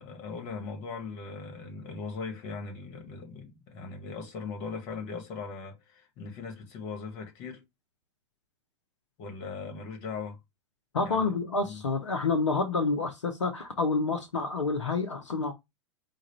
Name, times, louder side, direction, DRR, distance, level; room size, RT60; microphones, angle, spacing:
voice 1, 0.0-7.6 9.2-10.4 11.0-11.3 11.6-11.8, left 4 dB, 50° left, 1.6 m, -39 dB
voice 2, 10.9-15.5, left 3 dB, 90° left, 0.8 m, -28 dB
4.8 x 2.5 x 4.2 m
hypercardioid pair, 95°, 15 cm